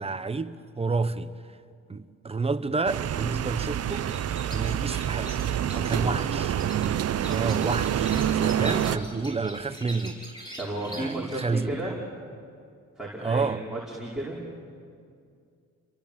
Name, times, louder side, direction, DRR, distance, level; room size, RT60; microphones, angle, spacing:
voice 1, 0.0-1.6 1.9-4.1 4.5-5.4 5.8-6.6 7.3-10.6 10.8-12.0 13.2-13.6, right 4 dB, 20° right, 1.0 m, -30 dB
sound 1, 2.9-9.0, right 10 dB, 55° right, 0.9 m, -27 dB
sound 2, 3.9-11.4, equal, 15° left, 7.8 m, -43 dB
voice 2, 5.7-6.1 8.5-8.9 10.6-11.9 13.0-14.4, right 1 dB, ahead, 5.1 m, -34 dB
29.5 x 22.5 x 7.5 m
cardioid pair, 90°, 30 cm